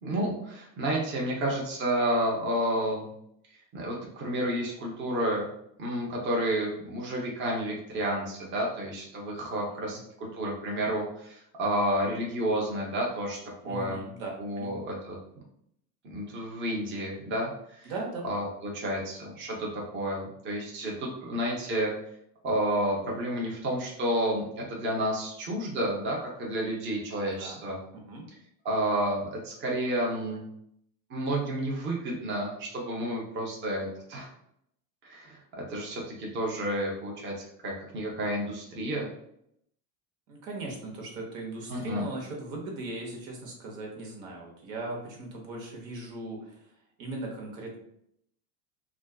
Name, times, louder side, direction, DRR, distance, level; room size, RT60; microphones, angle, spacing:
voice 1, 0.0-3.1 3.7-5.5 5.8-13.4 13.6-14.0 14.4-15.2 16.0-17.9 18.2-21.9 22.4-27.8 28.6-30.4 31.1-34.3 35.0-37.3 37.6-39.1 41.7-42.1, right 1 dB, 25° right, -2 dB, 0.6 m, -30 dB
voice 2, 9.6-10.0 13.6-14.3 14.6-14.7 17.8-18.2 27.3-27.6 27.9-28.2 40.3-46.7 47.0-47.8, right 2 dB, 70° right, 0 dB, 1.0 m, -38 dB
2.5 x 2.3 x 2.2 m, 0.72 s
supercardioid pair, 115°, 43 cm